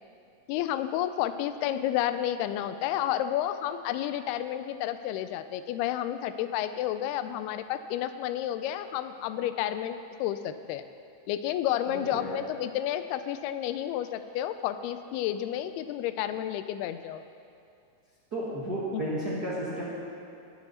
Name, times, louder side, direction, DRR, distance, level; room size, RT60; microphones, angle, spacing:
voice 1, 0.5-10.8 11.3-17.2 18.9-19.0, left 11 dB, 85° left, 11 dB, 2.5 m, -31 dB
voice 2, 11.9-12.4 18.3-19.9, right 1 dB, 45° right, -8 dB, 1.3 m, -33 dB
20.5 x 8.2 x 4.2 m, 2.5 s
omnidirectional pair, 4.6 m